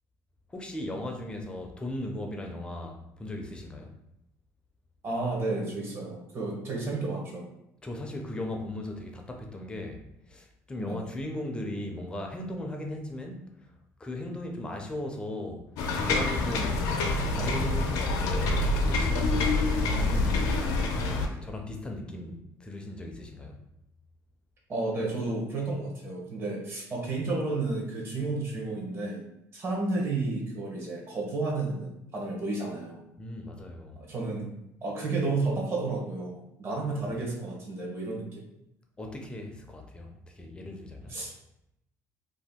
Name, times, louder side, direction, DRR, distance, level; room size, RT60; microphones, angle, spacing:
voice 1, 0.5-3.9 7.8-13.7 14.0-15.7 16.0-21.0 21.3-23.6 33.2-34.0 36.7-37.2 39.0-41.2, left 1 dB, 15° left, 3 dB, 0.4 m, -38 dB
voice 2, 5.0-7.4 10.8-11.0 19.7-20.4 24.7-29.2 29.5-33.0 34.0-34.5 34.8-38.5 41.1-41.3, right 3 dB, 40° right, -2 dB, 1.0 m, -32 dB
sound 1, 15.8-21.3, left 2 dB, 85° left, 0.5 m, -26 dB
2.7 x 2.2 x 3.5 m, 0.83 s
cardioid pair, 135°, 6 cm